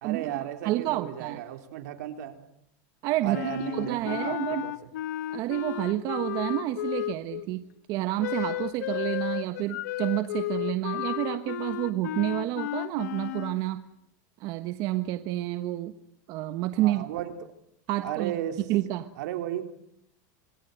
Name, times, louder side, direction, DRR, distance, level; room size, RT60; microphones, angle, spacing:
voice 1, 0.0-2.4 3.2-4.7 16.8-17.3 18.0-18.6 19.2-19.6, right 12 dB, 75° right, 6 dB, 3.6 m, -34 dB
voice 2, 0.6-1.4 3.0-4.6 5.3-7.6 7.9-13.8 14.4-15.9 16.3-17.0 17.9-18.3 18.7-19.1, right 15 dB, 50° right, 10 dB, 1.3 m, -29 dB
Wind instrument woodwind instrument, 3.3-7.5 8.2-13.6, left 15 dB, 80° left, 1.2 m, -33 dB
27.0 x 22.0 x 8.0 m, 0.74 s
supercardioid pair, 140°, 9 cm